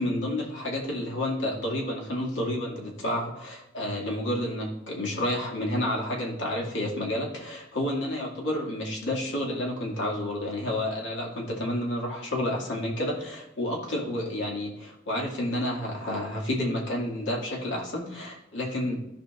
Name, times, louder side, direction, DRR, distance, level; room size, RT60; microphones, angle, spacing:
voice 1, 0.0-19.0, left 1 dB, 80° left, -3 dB, 2.2 m, -30 dB
14.0 x 5.4 x 2.5 m, 0.87 s
head